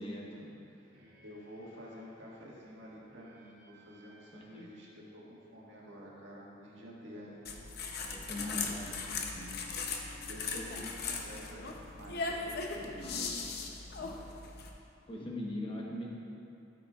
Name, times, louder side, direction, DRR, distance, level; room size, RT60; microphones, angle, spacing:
voice 1, 0.0-7.6 7.8-8.7 10.2-13.5, equal, 90° right, -5 dB, 1.7 m, -50 dB
sound 1, 0.9-13.0, left 3 dB, 55° right, 1.6 m, -60 dB
voice 2, 4.3-4.7 8.1-9.0 9.3-9.6 12.9-13.3 14.0-14.2 15.1-16.1, left 1 dB, 30° left, -3 dB, 1.1 m, -41 dB
sound 2, 7.4-14.7, left 4 dB, 60° left, 0.7 m, -39 dB
12.5 x 6.8 x 2.4 m, 2.6 s
head